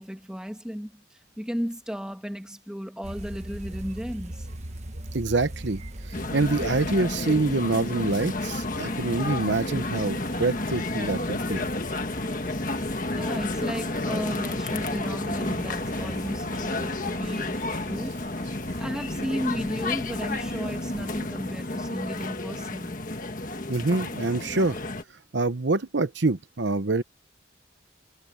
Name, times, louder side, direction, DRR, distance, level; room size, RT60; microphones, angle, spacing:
voice 1, 0.0-4.5 13.1-18.2 18.8-22.9, equal, 5° right, 1.8 m, -34 dB
sound 1, 3.0-21.2, right 1 dB, 35° right, 1.3 m, -43 dB
voice 2, 5.1-5.8 6.1-11.7 23.7-24.8 25.3-27.0, right 3 dB, 70° right, 1.0 m, -26 dB
sound 2, 6.1-25.0, left 2 dB, 45° left, 1.6 m, -31 dB
head